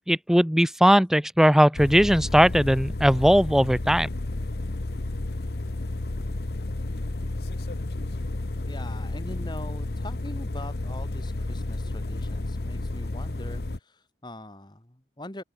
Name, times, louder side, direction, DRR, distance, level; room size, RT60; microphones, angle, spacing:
voice 1, 0.1-4.1, equal, 5° right, 0.9 m, -19 dB
sound 1, 1.7-13.8, left 2 dB, 60° left, 1.0 m, -31 dB
voice 2, 8.7-15.4, left 1 dB, 25° left, 2.5 m, -42 dB
open air
head